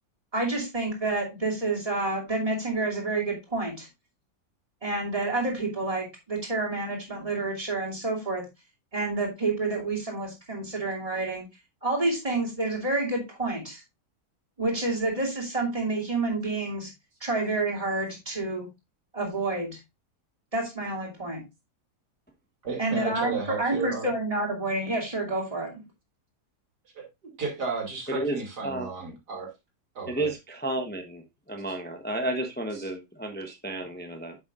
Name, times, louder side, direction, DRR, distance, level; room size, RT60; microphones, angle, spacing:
voice 1, 0.3-3.9 4.8-8.5 8.9-11.4 11.8-13.8 14.6-16.9 17.2-18.7 19.1-19.8 20.5-21.4 22.8-25.9, right 2 dB, 20° right, -1 dB, 2.7 m, -29 dB
voice 2, 22.6-24.1 26.9-29.5 29.9-30.3 32.8-32.9, right 4 dB, 85° right, 0 dB, 3.2 m, -33 dB
voice 3, 30.1-31.2 31.5-34.4, right 1 dB, 10° left, 4 dB, 0.9 m, -32 dB
9.3 x 7.0 x 2.4 m, 0.22 s
omnidirectional pair, 1.7 m